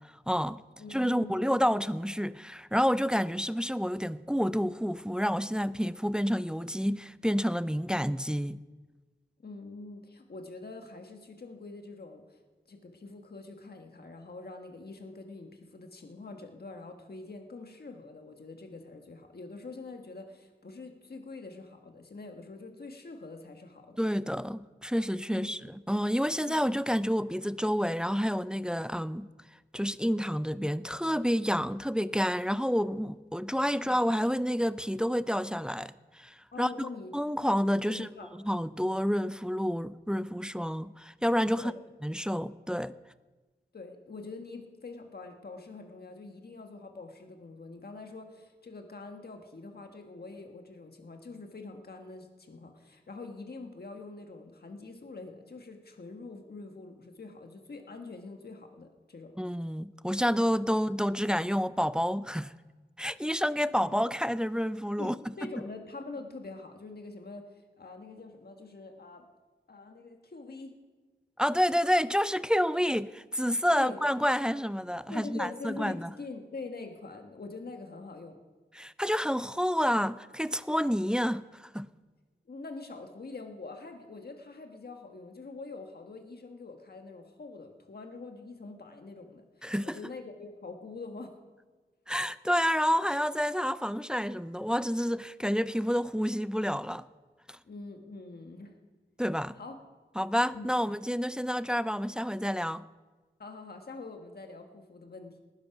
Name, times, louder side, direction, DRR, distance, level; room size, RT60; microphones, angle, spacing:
voice 1, 0.3-0.6 0.9-8.6 24.0-25.6 25.9-29.3 29.7-36.9 37.1-38.1 38.5-41.7 42.0-42.9 59.4-62.5 63.0-65.1 71.4-76.1 78.8-81.9 89.6-90.0 92.1-97.0 97.5-97.6 99.2-99.6 100.2-102.8, equal, 5° right, 0.4 m, -29 dB
voice 2, 0.8-1.6 9.4-12.4 12.7-24.0 25.3-25.7 26.4-26.6 33.8-34.0 36.5-37.1 37.8-38.3 41.6-41.8 43.7-59.3 63.8-64.0 65.0-69.3 69.7-70.8 73.7-74.0 75.1-78.4 82.5-91.3 97.6-98.8 99.5-99.8 100.5-100.7 103.4-105.4, left 3 dB, 60° left, 1.5 m, -44 dB
19.0 x 10.5 x 6.0 m
wide cardioid pair, 95°, 19 cm